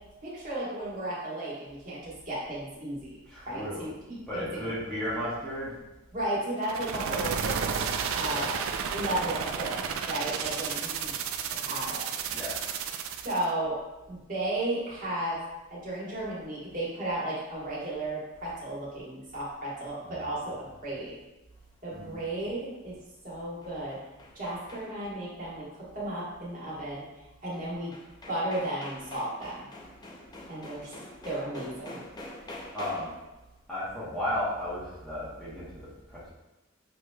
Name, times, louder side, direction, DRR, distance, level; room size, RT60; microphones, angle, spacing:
voice 1, 0.2-3.0 3.5-4.7 5.1-5.2 6.1-7.9 8.1-8.5 8.9-11.2 11.5-12.0 13.2-13.8 14.1-15.4 15.7-21.1 21.8-22.9 23.2-24.0 24.3-25.7 25.9-27.0 27.4-27.9 28.3-29.6 30.5-30.9 31.2-32.0, right 1 dB, 40° right, -8 dB, 1.4 m, -34 dB
voice 2, 3.3-3.9 4.3-5.8 6.9-7.3 8.3-8.5 12.3-12.6 20.1-20.2 21.9-22.2 32.7-33.1 33.7-36.3, left 1 dB, 5° left, -11 dB, 1.0 m, -34 dB
sound 1, 6.6-13.5, right 7 dB, 80° right, 0.3 m, -32 dB
sound 2, 23.4-25.2 27.5-27.6 27.9-33.3, left 1 dB, 20° left, 0.5 m, -46 dB
6.3 x 3.0 x 2.3 m, 1.0 s
head